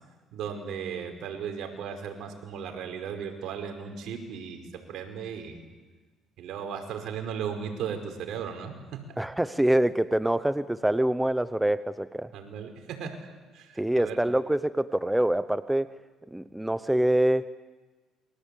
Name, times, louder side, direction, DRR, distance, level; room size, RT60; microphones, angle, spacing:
voice 1, 0.3-5.6 6.4-9.2 12.3-13.2 13.5-14.2, right 7 dB, 70° right, 5 dB, 5.1 m, -36 dB
voice 2, 9.2-12.3 13.8-15.9 16.3-17.5, right 1 dB, 5° right, 13 dB, 0.9 m, -25 dB
28.5 x 23.5 x 8.5 m, 1.3 s
supercardioid pair, 85°, 0 cm